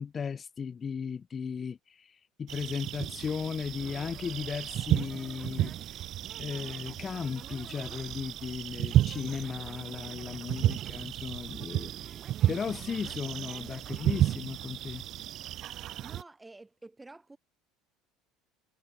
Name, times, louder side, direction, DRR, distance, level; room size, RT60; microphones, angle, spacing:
voice 1, 0.0-6.1 6.4-12.2 12.5-15.0, left 6 dB, 25° left, 0.6 m, -36 dB
sound 1, 2.5-16.2, right 13 dB, 50° right, 1.2 m, -32 dB
sound 2, 3.6-14.4, right 7 dB, 30° right, 2.0 m, -51 dB
voice 2, 16.0-17.4, right 2 dB, 10° right, 2.8 m, -50 dB
supercardioid pair, 125°, 0 cm